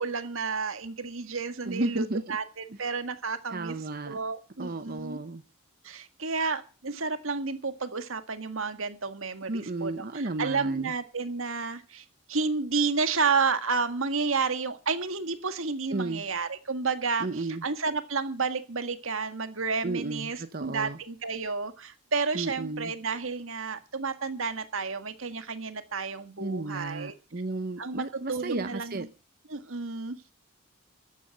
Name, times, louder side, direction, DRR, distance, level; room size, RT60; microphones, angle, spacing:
voice 1, 0.0-3.8 4.1-5.2 5.8-27.1 27.8-29.1 29.5-30.2, right 4 dB, 75° right, 10 dB, 1.8 m, -31 dB
voice 2, 1.7-2.4 3.5-4.2 4.6-5.4 9.5-10.9 15.9-16.2 17.2-17.6 19.8-21.0 22.3-22.9 26.4-29.1, right 2 dB, 45° right, 10 dB, 0.9 m, -33 dB
14.0 x 9.5 x 8.9 m, 0.35 s
head